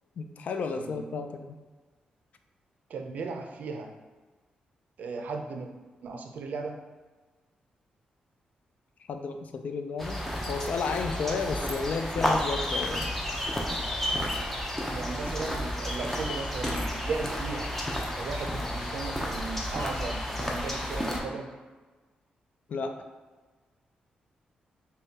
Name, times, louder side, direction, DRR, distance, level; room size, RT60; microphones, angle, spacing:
voice 1, 0.2-1.6 9.1-13.1 22.7-23.0, left 4 dB, 65° left, 7 dB, 0.3 m, -32 dB
voice 2, 2.9-3.9 5.0-5.7 6.0-6.8 14.9-17.8 18.1-21.5, right 4 dB, 70° right, 4 dB, 0.4 m, -36 dB
sound 1, 10.0-21.2, left 1 dB, 10° left, 0.6 m, -31 dB
5.0 x 2.3 x 2.7 m, 1.3 s
cardioid pair, 90°, 3 cm